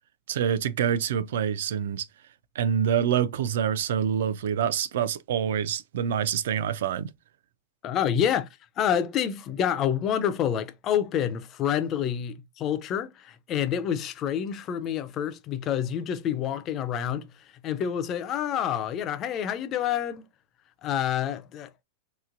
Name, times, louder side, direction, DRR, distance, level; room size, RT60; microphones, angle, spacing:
voice 1, 0.3-2.1 2.6-7.1, right 8 dB, 75° right, 0.4 m, -26 dB
voice 2, 7.8-8.5 8.8-17.3 17.6-20.2 20.8-21.8, left 9 dB, 25° left, 0.3 m, -28 dB
3.2 x 2.9 x 2.4 m
supercardioid pair, 170°, 0 cm